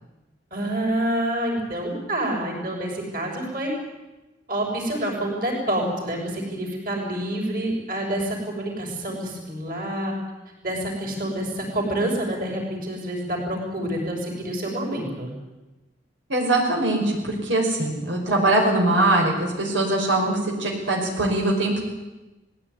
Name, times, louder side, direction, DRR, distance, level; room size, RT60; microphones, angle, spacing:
voice 1, 0.5-3.7 4.5-10.1 10.6-15.3, right 1 dB, 50° right, 0 dB, 6.5 m, -27 dB
voice 2, 16.3-21.8, right 2 dB, 90° right, -1 dB, 5.7 m, -22 dB
20.0 x 16.5 x 9.9 m, 1.1 s
head